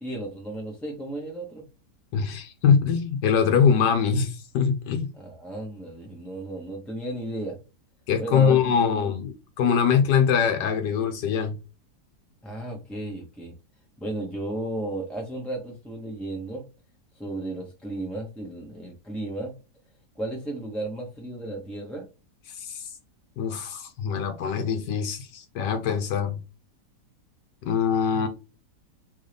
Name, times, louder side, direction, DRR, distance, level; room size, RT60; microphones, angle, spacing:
voice 1, 0.0-1.6 5.1-7.6 8.2-9.1 12.4-13.5 14.0-16.6 17.1-19.5 20.1-22.1, right 2 dB, ahead, 0.6 m, -34 dB
voice 2, 2.1-5.1 8.1-11.6 22.6-22.9 23.4-26.4 27.6-28.3, left 7 dB, 85° left, 1.4 m, -23 dB
3.9 x 3.6 x 3.4 m
omnidirectional pair, 1.8 m